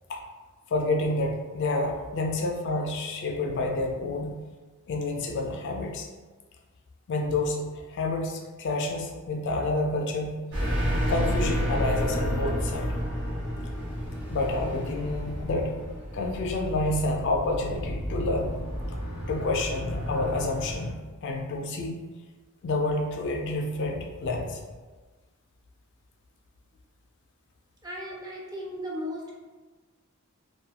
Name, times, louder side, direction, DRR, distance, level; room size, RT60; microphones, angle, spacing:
voice 1, 0.7-4.4 4.9-6.1 7.1-10.4 11.1-12.9 14.3-15.7 16.1-18.6 19.3-21.9 22.6-24.6, left 2 dB, 55° left, 1 dB, 0.4 m, -29 dB
sound 1, 10.5-20.9, equal, 55° right, 0.9 m, -31 dB
voice 2, 27.8-29.3, equal, 20° right, -3 dB, 0.4 m, -36 dB
2.3 x 2.2 x 2.8 m, 1.3 s
head